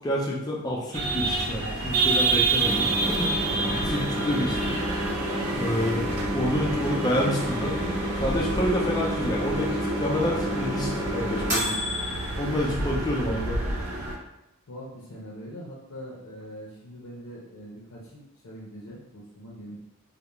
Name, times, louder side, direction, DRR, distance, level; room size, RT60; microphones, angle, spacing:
voice 1, 0.0-4.8 5.5-7.8 8.1-11.8 12.4-13.6, left 1 dB, 15° left, -3 dB, 0.4 m, -28 dB
sound 1, 0.9-14.2, right 3 dB, 65° right, 0.4 m, -29 dB
sound 2, 2.6-12.3, equal, 35° right, 0.9 m, -30 dB
voice 2, 5.2-5.9 12.4-12.9 14.7-19.8, equal, 70° left, -5 dB, 0.5 m, -42 dB
2.3 x 2.0 x 2.9 m, 0.89 s
head